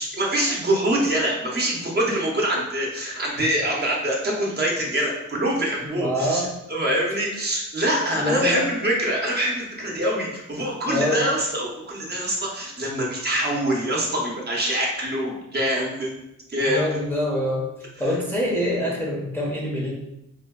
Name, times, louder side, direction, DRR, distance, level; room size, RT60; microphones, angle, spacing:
voice 1, 0.0-6.4 6.7-16.1 16.5-16.9, right 1 dB, 35° right, -3 dB, 0.7 m, -24 dB
voice 2, 5.8-6.5 8.1-8.6 10.9-11.2 16.7-17.7 18.0-19.9, left 1 dB, 5° left, -5 dB, 0.6 m, -25 dB
4.3 x 2.1 x 2.3 m, 0.82 s
wide cardioid pair, 135°, 31 cm